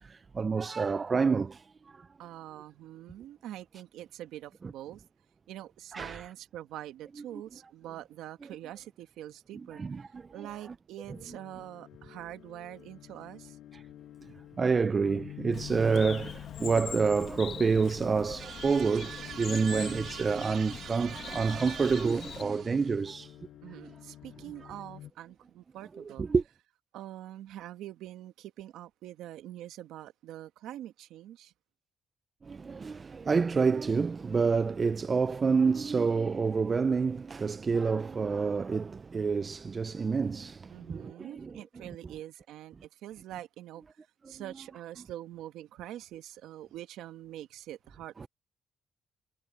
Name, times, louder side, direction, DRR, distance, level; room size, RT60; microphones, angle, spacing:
voice 1, 0.0-2.1 5.9-6.3 9.7-10.5 11.1-11.2 13.7-13.8 14.6-23.3 24.6-24.7 26.0-26.4 32.4-41.6 44.3-44.4 48.2-48.3, right 5 dB, 35° right, 0.5 m, -28 dB
voice 2, 2.2-5.0 5.5-13.6 19.6-20.0 23.6-26.3 26.9-31.5 40.7-43.8 44.3-48.3, right 13 dB, 90° right, 1.5 m, -45 dB
sound 1, 11.1-25.1, left 12 dB, 80° left, 6.6 m, -49 dB
Bird, 15.5-22.4, left 8 dB, 60° left, 1.4 m, -43 dB
sound 2, 18.4-23.1, right 9 dB, 65° right, 3.9 m, -43 dB
cardioid pair, 90°, 0 cm